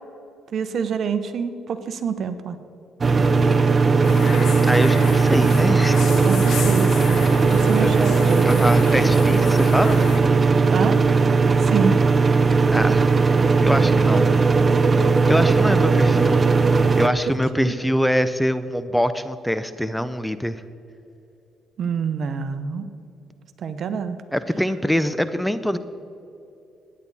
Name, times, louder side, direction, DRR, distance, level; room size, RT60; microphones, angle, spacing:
voice 1, 0.5-2.6 6.2-7.0 7.5-8.6 10.7-11.0 11.6-11.9 17.5-17.7 21.8-22.9 23.6-24.2, right 6 dB, 60° right, 10 dB, 0.9 m, -26 dB
sound 1, 3.0-17.1, right 4 dB, 35° right, 0.7 m, -17 dB
voice 2, 3.7-6.1 6.6-6.9 7.8-7.9 8.4-10.2 11.6-11.8 12.7-13.2 13.6-14.3 15.3-16.4 17.0-20.6 24.3-25.8, equal, 5° left, 12 dB, 0.5 m, -24 dB
sound 2, 4.0-10.2, left 4 dB, 75° left, 1.8 m, -31 dB
16.0 x 9.9 x 4.2 m, 2.7 s
cardioid pair, 90°, 0 cm